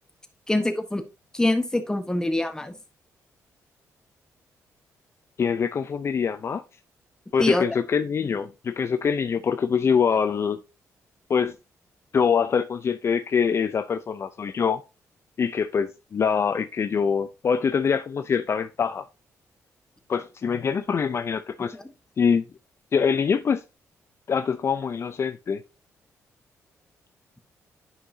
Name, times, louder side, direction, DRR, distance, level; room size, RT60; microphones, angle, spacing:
voice 1, 0.5-1.0 1.3-2.7 7.4-7.6 21.7-21.8, left 1 dB, 10° left, 1.2 m, -24 dB
voice 2, 5.4-6.6 7.3-10.6 11.3-11.5 12.1-14.8 15.4-19.1 20.1-21.8 22.2-22.4 22.9-23.6 24.3-25.6, left 6 dB, 45° left, 0.5 m, -24 dB
9.9 x 5.5 x 2.7 m
cardioid pair, 80°, 6 cm